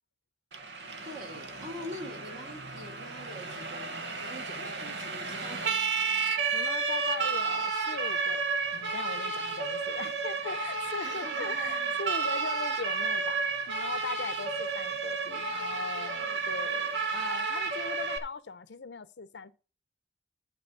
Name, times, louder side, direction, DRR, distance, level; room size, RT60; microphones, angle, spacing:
Siren, 0.5-18.2, right 4 dB, 80° right, 1.4 m, -32 dB
voice 1, 1.0-5.8 11.0-11.9, equal, 50° right, 3.2 m, -44 dB
voice 2, 6.5-19.5, left 4 dB, 85° left, 0.7 m, -40 dB
11.5 x 4.2 x 6.7 m
head